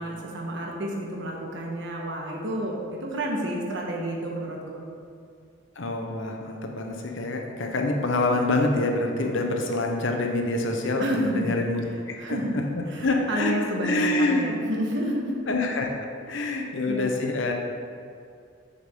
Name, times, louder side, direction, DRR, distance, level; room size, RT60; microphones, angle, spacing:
voice 1, 0.0-4.9 11.0-11.6 12.2-15.4 16.3-16.4 16.9-17.1, equal, 65° right, -1 dB, 1.4 m, -30 dB
voice 2, 5.8-12.4 13.0-13.5 13.8-14.7 15.5-17.5, left 2 dB, 70° left, 2 dB, 0.9 m, -26 dB
7.4 x 7.0 x 3.7 m, 2.4 s
head